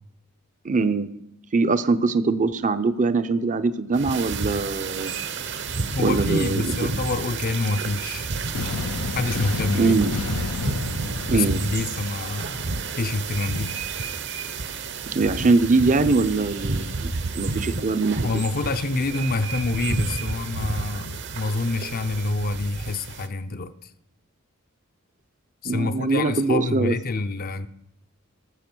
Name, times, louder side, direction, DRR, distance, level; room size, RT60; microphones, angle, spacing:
voice 1, 0.6-1.1 1.5-5.1 6.0-6.7 9.7-10.1 11.3-11.6 15.1-18.4 25.6-26.9, right 3 dB, 35° right, 11 dB, 0.6 m, -22 dB
sound 1, 3.9-23.3, right 4 dB, 55° right, 0.9 m, -31 dB
sound 2, 4.9-20.3, right 7 dB, 85° right, 2.1 m, -41 dB
voice 2, 5.9-8.3 9.1-9.9 11.3-13.7 18.2-23.9 25.6-27.7, left 3 dB, 45° left, 11 dB, 0.6 m, -27 dB
sound 3, 8.5-12.5, left 4 dB, 80° left, 0.7 m, -31 dB
14.0 x 7.6 x 6.1 m, 0.80 s
head